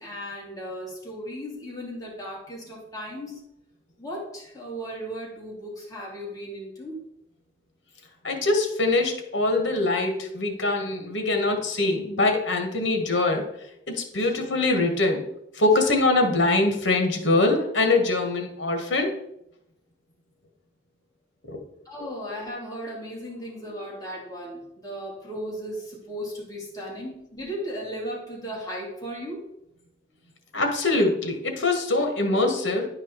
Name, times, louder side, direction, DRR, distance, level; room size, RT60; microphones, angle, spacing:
voice 1, 0.0-3.4 4.0-7.1 14.2-14.3 21.8-29.5, equal, 20° left, -4 dB, 2.8 m, -36 dB
voice 2, 8.2-13.4 13.9-15.2 15.5-19.1 21.5-21.6 22.0-22.1 30.5-32.9, left 2 dB, 65° left, 4 dB, 1.7 m, -23 dB
10.5 x 4.9 x 4.6 m, 0.79 s
head